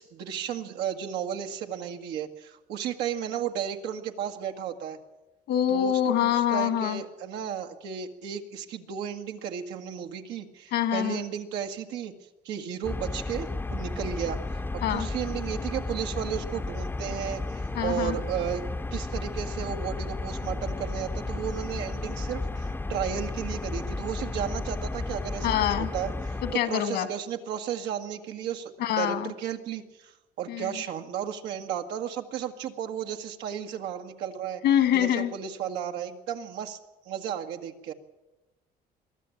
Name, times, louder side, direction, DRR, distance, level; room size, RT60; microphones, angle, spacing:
voice 1, 0.0-5.0 5.7-12.1 12.4-18.6 18.9-30.1 30.4-34.6 34.9-36.8 37.1-37.9, right 9 dB, 85° right, 4 dB, 1.9 m, -34 dB
voice 2, 5.5-7.0 10.7-11.2 14.8-15.1 17.7-18.2 25.4-25.9 26.5-27.1 28.8-29.3 30.5-30.7 34.6-35.3, left 10 dB, 80° left, 9 dB, 2.2 m, -25 dB
sound 1, 12.8-26.5, left 2 dB, 10° left, 0.7 m, -33 dB
23.5 x 13.5 x 8.7 m, 1.1 s
cardioid pair, 110°, 17 cm